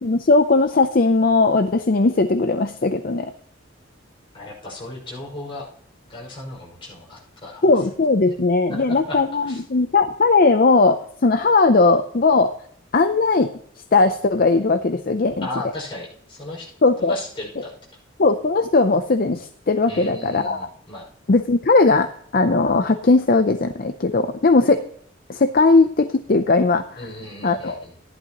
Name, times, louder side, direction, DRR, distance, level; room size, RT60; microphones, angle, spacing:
voice 1, 0.0-3.3 7.6-12.5 12.9-13.5 13.9-15.5 16.8-17.2 18.2-20.7 21.3-22.1 22.3-24.8 25.3-27.0 27.4-27.8, left 3 dB, 45° left, 8 dB, 0.6 m, -18 dB
voice 2, 4.3-5.7 6.1-7.6 8.7-9.6 15.4-16.7 17.0-17.7 19.8-21.1 27.0-27.9, left 2 dB, 25° left, -4 dB, 5.7 m, -35 dB
14.5 x 11.0 x 3.0 m, 0.63 s
head